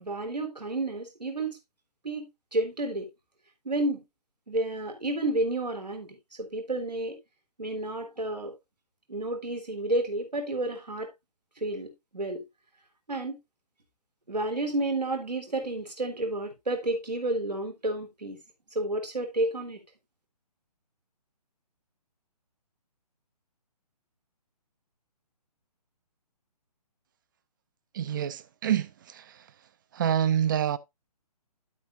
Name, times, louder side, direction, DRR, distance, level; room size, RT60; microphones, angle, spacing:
voice 1, 0.0-1.6 2.0-3.1 3.6-4.0 4.5-7.2 7.6-8.5 9.1-11.1 11.6-12.4 13.1-13.4 14.3-18.4 18.7-19.8, right 2 dB, 80° right, 3.9 m, -31 dB
voice 2, 27.9-29.5 29.9-30.8, right 9 dB, 30° right, 0.6 m, -27 dB
11.0 x 8.4 x 2.4 m
figure-of-eight pair, 140°, 21 cm